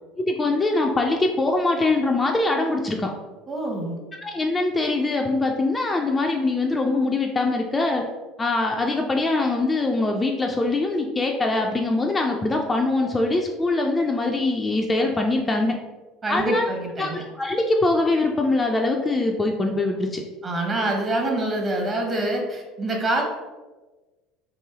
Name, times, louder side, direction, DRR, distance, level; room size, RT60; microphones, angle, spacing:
voice 1, 0.2-3.1 4.2-8.0 8.4-15.8 16.3-16.6 17.0-17.1 17.4-20.2, left 2 dB, 20° left, 2 dB, 0.4 m, -23 dB
voice 2, 3.5-4.0 16.2-17.2 20.4-23.2, right 1 dB, 30° right, 1 dB, 1.0 m, -26 dB
3.1 x 2.6 x 3.5 m, 1.2 s
figure-of-eight pair, 65°, 0 cm